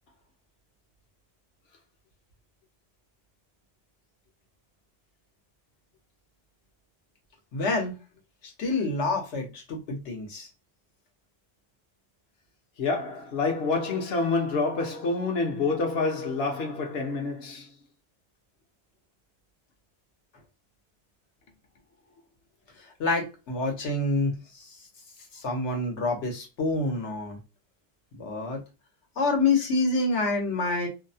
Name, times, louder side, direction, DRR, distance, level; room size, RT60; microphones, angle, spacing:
voice 1, 7.5-7.9 8.4-10.5 22.8-24.8 25.3-27.4 28.1-28.6 29.2-30.9, left 3 dB, 90° left, 1.1 m, -27 dB
voice 2, 12.8-17.7, left 3 dB, 70° left, 0.9 m, -27 dB
2.7 x 2.0 x 2.6 m
omnidirectional pair, 1.1 m